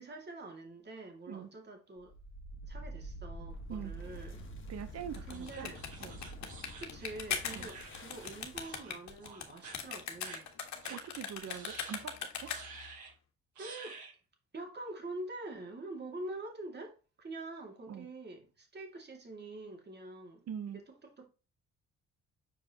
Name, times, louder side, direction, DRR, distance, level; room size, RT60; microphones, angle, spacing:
voice 1, 0.0-2.1 2.7-4.5 5.3-5.8 6.8-10.5 13.6-14.0 14.5-21.3, right 2 dB, 35° right, 2.5 m, -45 dB
sound 1, 2.0-8.9, right 1 dB, 40° left, 1.7 m, -47 dB
voice 2, 4.7-5.7 6.0-6.2 7.5-7.7 10.9-12.5 17.9-18.1 20.5-20.8, right 8 dB, 55° right, 1.0 m, -43 dB
sound 2, 5.0-12.9, left 7 dB, 65° left, 1.6 m, -40 dB
sound 3, 5.3-8.3 8.6-8.9 9.2-9.8 10.2-10.4 10.8-11.0 11.5-12.0 12.4-13.1 13.6-14.1, right 4 dB, 70° right, 3.5 m, -50 dB
7.0 x 4.8 x 3.0 m
cardioid pair, 90°, 30 cm